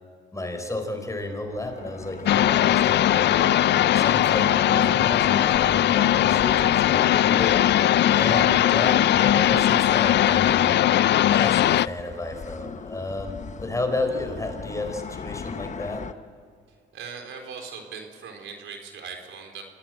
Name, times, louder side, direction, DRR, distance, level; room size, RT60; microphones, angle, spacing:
voice 1, 0.3-3.5 3.9-7.6 8.1-10.7 11.2-16.0, left 2 dB, 15° left, 5 dB, 4.5 m, -32 dB
sound 1, 1.2-16.1, left 6 dB, 40° left, 1.1 m, -40 dB
sound 2, 2.3-11.9, left 12 dB, 60° left, 0.5 m, -19 dB
voice 2, 16.9-19.6, right 6 dB, 75° right, 4 dB, 4.1 m, -39 dB
26.0 x 17.5 x 7.5 m, 2.1 s
cardioid pair, 90°, 20 cm